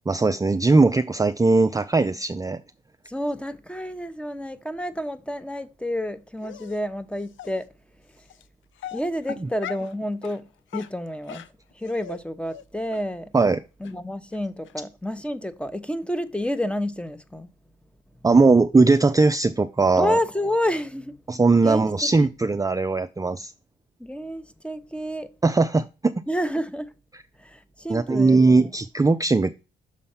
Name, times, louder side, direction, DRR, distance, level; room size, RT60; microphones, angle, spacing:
voice 1, 0.1-2.6 13.3-13.6 18.2-20.2 21.3-23.5 25.4-26.1 27.9-29.5, right 3 dB, 15° right, 0.5 m, -19 dB
voice 2, 3.1-7.6 8.9-10.4 10.7-11.4 11.7-13.3 13.8-17.5 20.0-21.2 21.6-22.3 24.0-25.3 26.3-26.9 27.4-28.8, left 1 dB, 5° left, 0.9 m, -29 dB
Dog, 6.4-6.8 7.4-7.5 8.3-8.4 8.8-9.9 10.2-10.4 10.7-12.2 12.5-12.6 12.9-13.0 13.4-13.5 13.8-13.9 14.3-14.4 14.6-14.7, left 10 dB, 70° left, 0.6 m, -39 dB
6.5 x 4.1 x 5.6 m
supercardioid pair, 55°, 21 cm